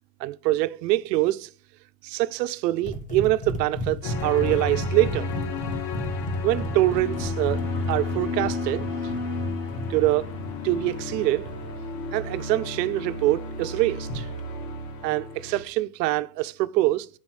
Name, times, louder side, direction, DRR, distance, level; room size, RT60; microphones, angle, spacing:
voice 1, 0.2-1.5 2.0-5.3 6.4-7.6 7.9-8.9 9.9-10.3 10.6-11.5 12.1-14.3 15.0-17.1, right 17 dB, 85° right, 0.8 m, -24 dB
sound 1, 2.8-11.7 14.0-14.4, left 1 dB, 15° left, 2.1 m, -34 dB
sound 2, 4.0-15.6, left 3 dB, 80° left, 3.5 m, -32 dB
9.8 x 4.8 x 6.3 m
supercardioid pair, 120°, 48 cm